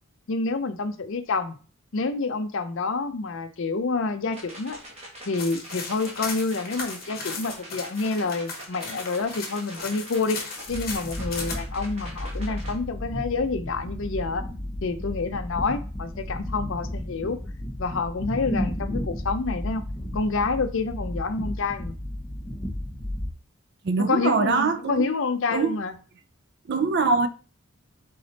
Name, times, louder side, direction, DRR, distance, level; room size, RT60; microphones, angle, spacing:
voice 1, 0.3-1.5 1.9-4.8 5.3-10.4 10.7-14.4 14.8-17.4 17.8-19.8 20.1-22.0 24.1-25.9, left 4 dB, 55° left, 0.5 m, -28 dB
sound 1, 4.3-12.7, right 1 dB, 30° right, 1.3 m, -43 dB
sound 2, 5.4-11.5, left 4 dB, 40° left, 1.1 m, -36 dB
sound 3, 10.7-23.3, left 1 dB, 15° left, 0.8 m, -33 dB
voice 2, 23.8-25.1 25.5-25.8 26.7-27.3, right 4 dB, 50° right, 0.4 m, -23 dB
3.8 x 3.3 x 4.0 m
head